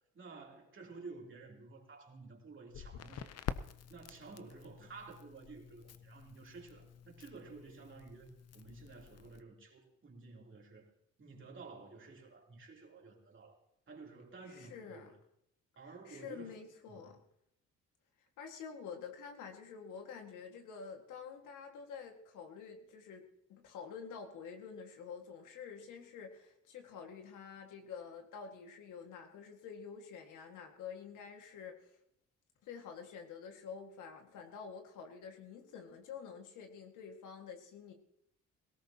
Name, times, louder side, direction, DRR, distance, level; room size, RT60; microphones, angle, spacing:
voice 1, 0.1-3.3 3.9-10.9 11.2-13.6 13.9-15.1 15.7-16.6 16.9-17.1, right 4 dB, 40° right, 0 dB, 3.2 m, -52 dB
Crackle, 2.7-9.4, left 8 dB, 55° left, 0.7 m, -48 dB
voice 2, 14.4-15.1 16.0-17.2 18.4-31.9 32.6-37.9, left 6 dB, 85° left, 4 dB, 1.9 m, -48 dB
18.0 x 17.0 x 2.9 m, 0.76 s
cardioid pair, 90°, 30 cm